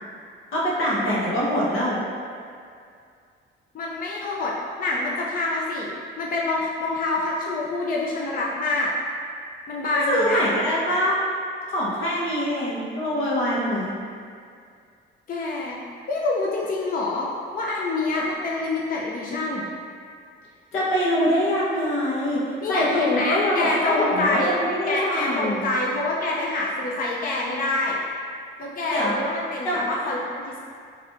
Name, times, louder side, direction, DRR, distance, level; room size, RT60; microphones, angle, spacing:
voice 1, 0.5-2.0 9.9-11.2 11.7-13.9 20.7-25.7 28.9-29.1 29.6-29.8, equal, 85° left, -6 dB, 1.2 m, -24 dB
voice 2, 3.7-8.9 9.7-10.4 15.3-15.8 16.1-19.6 22.6-24.6 24.9-28.0 28.6-30.6, left 2 dB, 45° left, -3 dB, 0.6 m, -26 dB
5.8 x 3.4 x 2.5 m, 2.3 s
cardioid pair, 90°, 20 cm